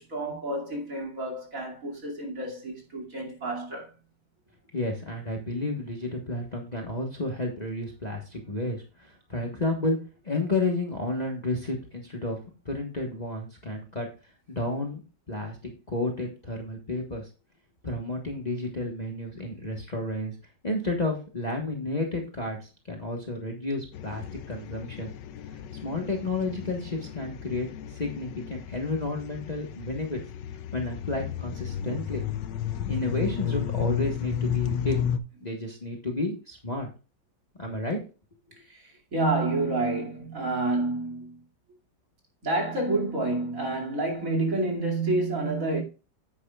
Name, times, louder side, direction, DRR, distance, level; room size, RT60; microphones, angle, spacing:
voice 1, 0.0-3.9 38.6-41.4 42.4-45.8, right 2 dB, 45° right, 2.9 m, -29 dB
voice 2, 4.7-10.0 10.2-12.4 12.6-14.1 14.5-15.0 15.3-15.6 15.9-17.3 17.8-20.3 20.6-25.1 25.8-27.7 27.9-30.2 30.7-32.2 32.9-35.0 35.4-36.9 37.6-38.0, left 2 dB, 25° left, 1.4 m, -31 dB
sound 1, 23.9-35.2, left 9 dB, 80° left, 1.3 m, -33 dB
9.6 x 9.0 x 2.4 m
omnidirectional pair, 1.9 m